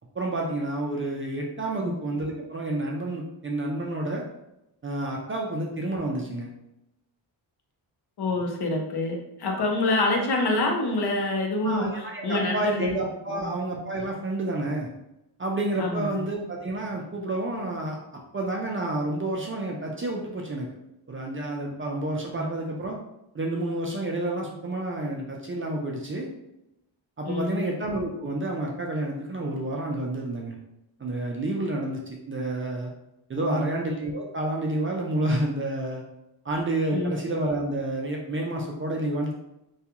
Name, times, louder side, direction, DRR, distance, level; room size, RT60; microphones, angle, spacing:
voice 1, 0.2-4.2 4.8-6.5 9.5-9.6 11.6-14.9 15.4-18.0 18.3-20.7 21.1-23.0 23.3-26.3 27.2-30.6 31.0-32.9 33.3-36.0 36.4-39.3, right 1 dB, 30° right, -1 dB, 0.4 m, -29 dB
voice 2, 8.2-13.0 13.3-13.5 15.8-16.2 22.3-22.5 27.2-27.7 33.4-33.7 36.9-37.1, left 2 dB, 55° left, 1 dB, 0.7 m, -27 dB
2.3 x 2.2 x 2.8 m, 0.87 s
cardioid pair, 90°, 47 cm